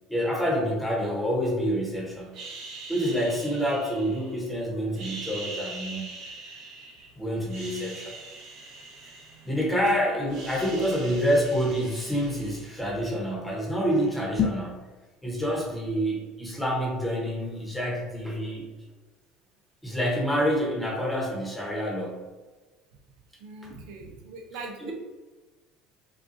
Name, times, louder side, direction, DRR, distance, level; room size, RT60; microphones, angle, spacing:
voice 1, 0.1-2.3 2.9-6.1 7.2-8.1 9.5-14.9 15.2-18.6 19.8-22.3 24.8-24.9, equal, 5° left, -2 dB, 1.0 m, -27 dB
sound 1, 2.3-4.5 4.9-7.1 7.4-9.8 10.1-13.0, right 3 dB, 55° right, 1.0 m, -42 dB
sound 2, 14.3-14.8, left 7 dB, 45° left, 0.5 m, -27 dB
voice 2, 23.4-24.9, right 3 dB, 80° right, 2 dB, 0.6 m, -41 dB
5.2 x 2.4 x 2.7 m, 1.2 s
cardioid pair, 125°, 0 cm